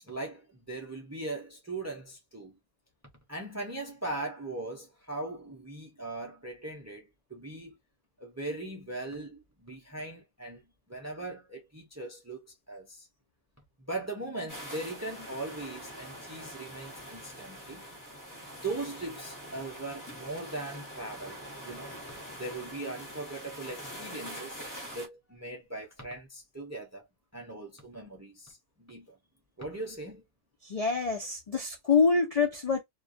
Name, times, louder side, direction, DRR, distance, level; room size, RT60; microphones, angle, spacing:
voice 1, 0.0-2.5 3.3-7.7 8.2-10.6 10.9-13.1 13.9-17.8 18.6-22.0 22.4-24.6 24.9-27.1 27.3-29.2 29.6-30.2, right 2 dB, 20° right, 0.4 m, -39 dB
sound 1, 14.5-25.1, equal, 20° left, 0.9 m, -44 dB
voice 2, 30.6-32.8, left 5 dB, 50° left, 0.4 m, -26 dB
2.3 x 2.2 x 2.5 m
omnidirectional pair, 1.2 m